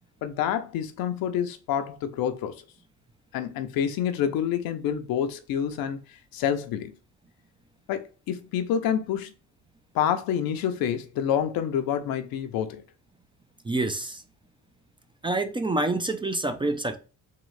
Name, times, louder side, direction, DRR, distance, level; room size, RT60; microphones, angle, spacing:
voice 1, 0.2-2.6 3.3-6.0 6.3-6.9 7.9-9.3 9.9-12.8, left 9 dB, 80° left, 0.7 m, -27 dB
voice 2, 13.6-14.2 15.2-17.0, right 2 dB, 15° right, 0.4 m, -27 dB
3.7 x 3.0 x 3.1 m
cardioid pair, 90°, 35 cm